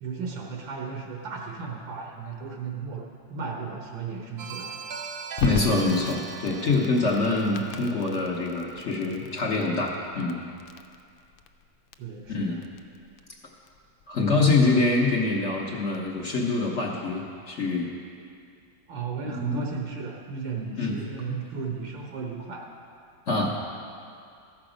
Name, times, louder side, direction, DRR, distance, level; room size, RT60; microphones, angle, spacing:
voice 1, 0.0-3.0 3.3-4.8 12.0-12.6 18.9-22.7, right 5 dB, 80° right, 0 dB, 1.7 m, -35 dB
sound 1, 4.4-9.1, right 5 dB, 65° right, 0.8 m, -40 dB
Crackle, 5.4-16.1, left 4 dB, 85° left, 1.3 m, -39 dB
voice 2, 5.4-10.5 12.3-12.6 14.1-17.9 19.2-19.6 20.8-21.0 21.3-21.4 23.3-23.5, left 3 dB, 50° left, -1 dB, 0.9 m, -25 dB
14.0 x 6.1 x 5.0 m, 2.4 s
omnidirectional pair, 2.0 m